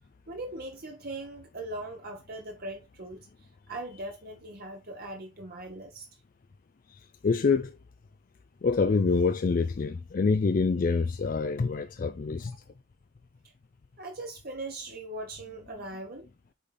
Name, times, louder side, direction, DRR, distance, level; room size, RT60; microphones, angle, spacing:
voice 1, 0.3-3.3 3.7-6.1 12.5-12.6 13.4-13.5 14.0-16.3, right 2 dB, 50° right, 1.1 m, -40 dB
voice 2, 7.2-7.7 8.6-12.6, left 4 dB, 45° left, 0.4 m, -26 dB
8.7 x 4.1 x 3.4 m
head